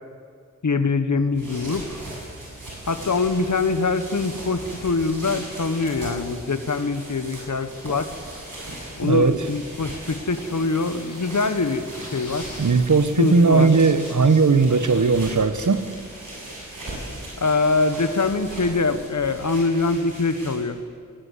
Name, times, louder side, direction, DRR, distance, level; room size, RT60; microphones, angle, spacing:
voice 1, 0.6-2.0 2.9-8.1 9.0-12.5 13.2-13.7 17.4-20.8, left 3 dB, 70° left, 10 dB, 1.4 m, -23 dB
sound 1, 1.2-20.8, right 1 dB, 85° right, 7.7 m, -38 dB
voice 2, 9.0-9.5 12.6-15.8, right 4 dB, 70° right, 12 dB, 1.3 m, -18 dB
sound 2, 10.3-15.4, left 2 dB, 85° left, 4.6 m, -45 dB
20.5 x 19.0 x 8.3 m, 2.2 s
cardioid pair, 45°, 31 cm